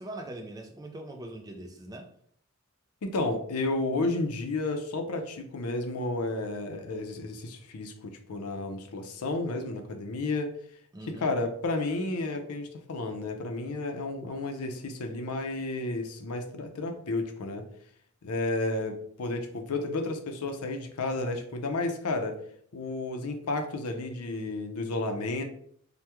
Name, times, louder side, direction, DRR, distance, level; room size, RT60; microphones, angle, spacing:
voice 1, 0.0-2.1 10.9-11.3, right 1 dB, 15° right, 0.3 m, -41 dB
voice 2, 3.0-10.6 11.0-17.7 18.2-22.4 22.7-25.4, left 2 dB, 80° left, 0.5 m, -32 dB
3.4 x 2.2 x 2.9 m
head